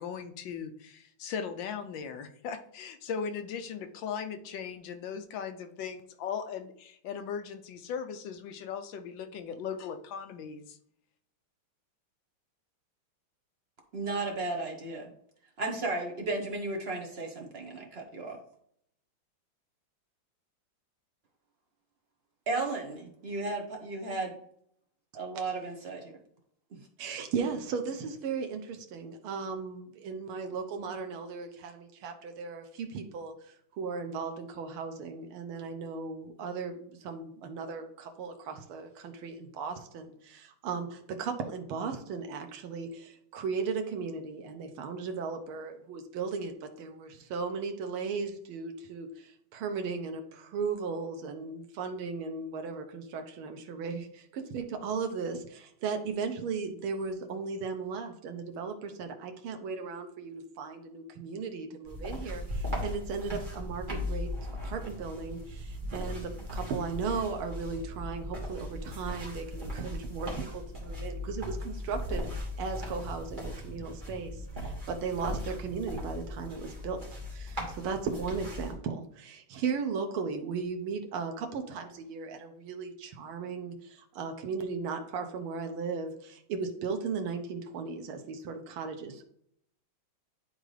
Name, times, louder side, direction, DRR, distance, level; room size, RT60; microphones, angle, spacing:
voice 1, 0.0-10.8, left 6 dB, 70° left, 7 dB, 1.3 m, -38 dB
voice 2, 13.9-15.1 15.6-18.4 22.5-24.4 25.1-26.1 26.7-26.9, right 2 dB, 50° right, 1 dB, 0.7 m, -34 dB
voice 3, 27.0-64.3 64.6-89.2, right 5 dB, 90° right, 5 dB, 1.6 m, -36 dB
sound 1, 61.9-78.7, left 1 dB, 25° right, 2.0 m, -38 dB
10.0 x 3.9 x 3.2 m, 0.68 s
omnidirectional pair, 2.3 m